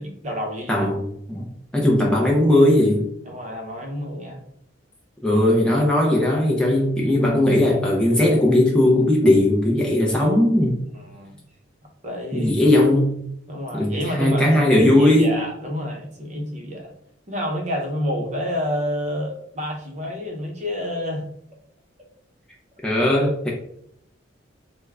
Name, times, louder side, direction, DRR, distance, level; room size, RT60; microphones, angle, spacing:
voice 1, 0.0-0.9 3.3-4.4 10.9-11.4 12.0-12.6 13.5-16.9 17.3-21.2, equal, 40° right, 0.7 m, -29 dB
voice 2, 0.7-3.1 5.2-10.8 12.3-13.2 13.7-15.4 22.8-23.5, left 1 dB, 5° left, 0.5 m, -18 dB
3.5 x 2.1 x 3.4 m
head